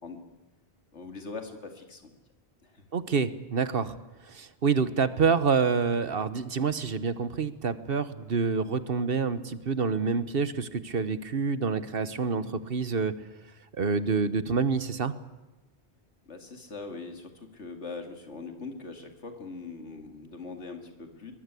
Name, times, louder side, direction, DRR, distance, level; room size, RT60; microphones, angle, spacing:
voice 1, 0.9-2.1 2.6-2.8 16.3-21.3, left 4 dB, 85° left, 5 dB, 2.8 m, -41 dB
voice 2, 2.9-3.9 4.3-13.1 13.7-15.1, right 5 dB, 55° right, 13 dB, 1.3 m, -27 dB
22.5 x 21.0 x 8.4 m, 1.0 s
omnidirectional pair, 1.2 m